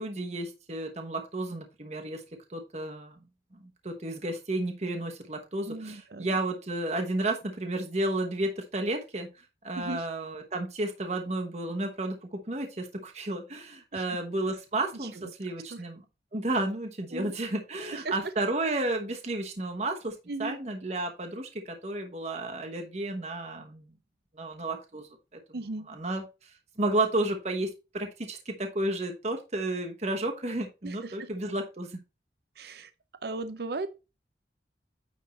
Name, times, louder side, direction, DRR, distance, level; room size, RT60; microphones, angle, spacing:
voice 1, 0.0-2.2 2.5-3.2 3.6-9.3 9.6-16.0 16.3-23.9 24.3-25.1 25.9-27.7 27.9-32.0, right 2 dB, 40° right, 1.1 m, -32 dB
voice 2, 5.7-6.3 9.8-10.1 13.9-14.0 15.2-15.3 15.7-15.8 17.1-17.3 17.9-18.2 20.3-20.6 25.5-25.9 30.8-31.3 32.6-32.9 33.2-33.9, right 2 dB, 60° right, 0.6 m, -37 dB
9.5 x 3.7 x 4.2 m
head